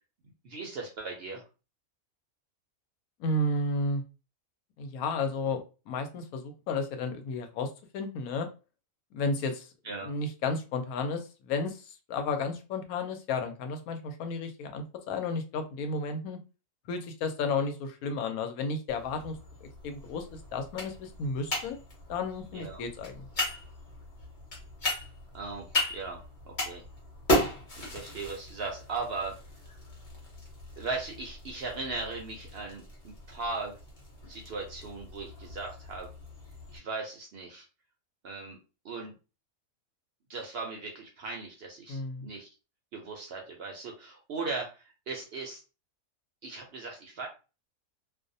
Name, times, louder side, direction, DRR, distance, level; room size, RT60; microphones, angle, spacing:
voice 1, 0.4-1.4 9.8-10.1 22.5-22.8 25.3-25.7 25.9-26.8 27.8-29.4 30.8-33.8 34.3-36.1 36.7-37.7 38.2-38.6 38.8-39.1 40.3-42.5 42.9-45.6 46.4-47.3, right 3 dB, 65° right, 1 dB, 0.6 m, -38 dB
voice 2, 3.2-4.0 4.8-8.5 9.1-9.7 10.0-16.4 16.9-19.3 19.8-20.3 20.5-21.8 22.1-23.3 41.9-42.3, left 3 dB, 90° left, 7 dB, 1.0 m, -32 dB
sound 1, 18.9-36.8, left 1 dB, 40° left, 0.9 m, -37 dB
2.5 x 2.0 x 2.6 m, 0.32 s
omnidirectional pair, 1.5 m